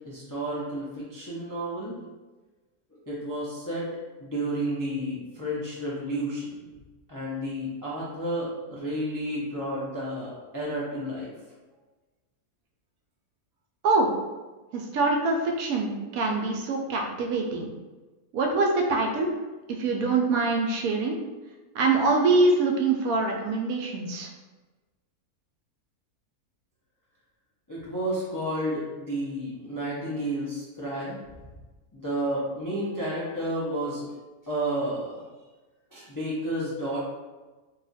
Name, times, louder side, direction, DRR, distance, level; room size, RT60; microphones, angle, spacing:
voice 1, 0.0-2.0 3.1-3.9 4.2-6.5 7.1-11.3 27.7-31.2 31.9-34.0 34.5-35.2 35.9-37.0, right 1 dB, 30° left, -8 dB, 0.3 m, -31 dB
voice 2, 14.7-17.7 18.3-19.3 19.8-21.2 21.7-24.3, right 3 dB, 70° right, 1 dB, 0.9 m, -24 dB
2.8 x 2.4 x 4.0 m, 1.2 s
omnidirectional pair, 1.6 m